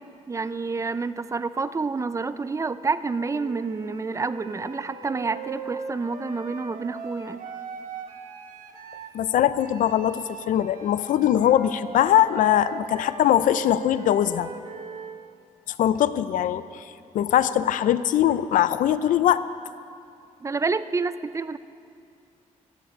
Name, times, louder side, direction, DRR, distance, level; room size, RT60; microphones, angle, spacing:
voice 1, 0.3-7.4 20.4-21.6, right 4 dB, 25° right, 13 dB, 0.5 m, -28 dB
Wind instrument woodwind instrument, 3.3-9.2 9.6-15.2, right 5 dB, 90° right, 1.3 m, -40 dB
voice 2, 9.1-14.5 15.7-19.5, left 11 dB, 80° left, 14 dB, 0.5 m, -22 dB
14.5 x 7.9 x 8.5 m, 2.4 s
cardioid pair, 95°, 13 cm